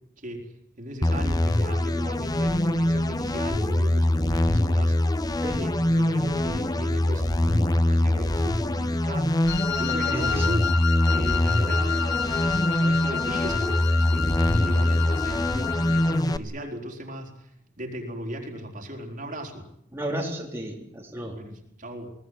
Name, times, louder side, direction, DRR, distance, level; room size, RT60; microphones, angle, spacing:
voice 1, 0.2-0.5 0.8-5.0 5.5-19.7 21.3-22.1, equal, 40° right, 2 dB, 4.3 m, -37 dB
sound 1, 1.0-16.4, left 1 dB, 20° left, 1.0 m, -23 dB
Wind instrument woodwind instrument, 9.5-16.2, left 6 dB, 60° left, 1.1 m, -30 dB
voice 2, 9.9-10.5 19.9-21.4, right 1 dB, 10° right, -2 dB, 3.7 m, -32 dB
21.5 x 18.5 x 9.8 m, 0.74 s
head